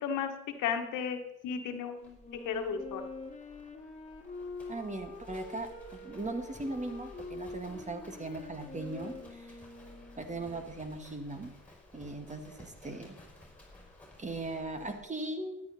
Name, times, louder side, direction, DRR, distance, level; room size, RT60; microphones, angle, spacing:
voice 1, 0.0-0.3 0.6-3.0, left 7 dB, 90° left, 6 dB, 1.4 m, -34 dB
Livestock farm animals working animals, 2.0-15.0, left 2 dB, 5° left, 5.2 m, -55 dB
Wind instrument woodwind instrument, 2.2-10.8, left 3 dB, 20° left, 2.2 m, -46 dB
voice 2, 4.7-9.6 10.2-11.5 11.9-13.1 14.2-15.6, right 2 dB, 25° right, 6 dB, 1.7 m, -39 dB
13.0 x 9.9 x 4.1 m, 0.89 s
cardioid pair, 90°, 30 cm